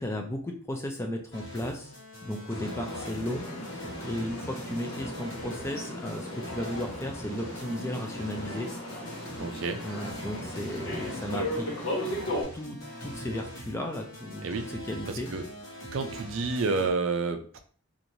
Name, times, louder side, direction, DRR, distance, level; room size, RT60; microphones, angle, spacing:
voice 1, 0.0-1.9 2.2-8.7 9.8-11.7 12.5-15.3, left 1 dB, 10° left, 2 dB, 0.3 m, -35 dB
sound 1, 1.3-16.9, equal, 60° left, 1.0 m, -43 dB
sound 2, 2.5-12.4, left 1 dB, 80° left, 1.2 m, -37 dB
voice 2, 9.4-9.8 14.4-14.7 15.1-15.4 15.9-17.6, right 4 dB, 60° right, 7 dB, 0.4 m, -30 dB
3.1 x 2.5 x 2.7 m, 0.43 s
head